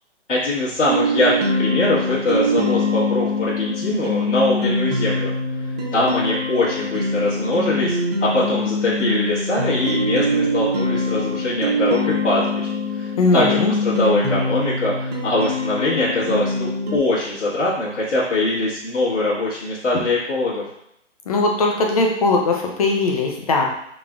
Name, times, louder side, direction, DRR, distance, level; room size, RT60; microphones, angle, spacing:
voice 1, 0.3-5.3 5.6-20.6, left 2 dB, 75° left, -10 dB, 1.6 m, -22 dB
sound 1, 0.9-17.0, left 1 dB, 35° right, 0.7 m, -23 dB
voice 2, 13.2-13.7 21.3-23.7, left 3 dB, 30° left, 2 dB, 0.6 m, -19 dB
4.4 x 3.9 x 2.4 m, 0.75 s
figure-of-eight pair, 145°, 36 cm